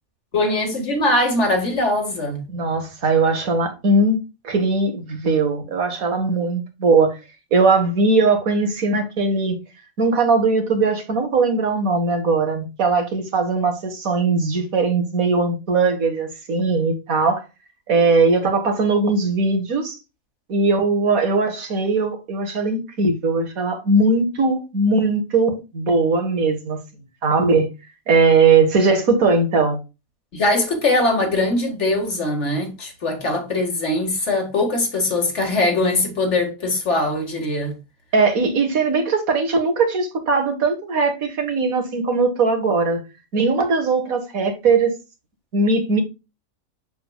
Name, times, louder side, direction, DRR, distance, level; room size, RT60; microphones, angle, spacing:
voice 1, 0.3-2.4 30.3-37.8, left 2 dB, 55° left, 2.1 m, -21 dB
voice 2, 2.5-4.2 4.4-7.2 7.5-9.6 10.0-17.4 17.9-20.0 20.5-26.8 27.2-27.7 28.1-29.8 38.1-43.0 43.3-45.0 45.5-46.0, right 3 dB, 80° right, 2.0 m, -19 dB
7.0 x 6.8 x 2.3 m
omnidirectional pair, 1.5 m